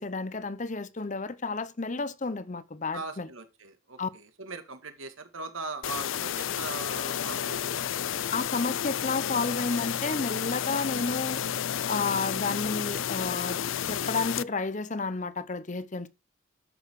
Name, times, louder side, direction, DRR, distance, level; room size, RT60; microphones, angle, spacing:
voice 1, 0.0-3.3 4.0-4.1 8.3-11.4 11.9-13.6 13.8-16.1, left 3 dB, 35° left, 0.7 m, -31 dB
voice 2, 2.9-7.8, right 3 dB, 80° right, 2.2 m, -40 dB
sound 1, 5.8-14.4, left 9 dB, 75° left, 0.5 m, -31 dB
11.0 x 7.1 x 4.8 m
head